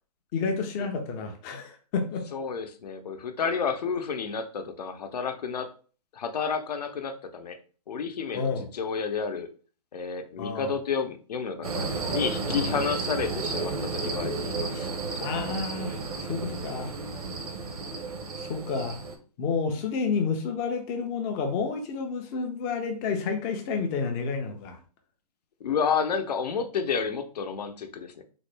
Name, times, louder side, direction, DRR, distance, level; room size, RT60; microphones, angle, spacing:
voice 1, 0.3-2.3 8.3-8.7 10.4-10.7 12.5-12.8 15.2-16.9 18.4-19.0 19.4-24.8, left 5 dB, 15° left, 4 dB, 0.3 m, -30 dB
voice 2, 2.3-5.7 6.1-7.6 7.9-9.5 9.9-14.9 15.1-15.3 25.6-28.2, left 6 dB, 80° left, 7 dB, 0.6 m, -31 dB
sound 1, 11.6-19.1, right 3 dB, 65° right, 0.7 m, -32 dB
3.7 x 2.1 x 3.2 m, 0.39 s
hypercardioid pair, 150°, 20 cm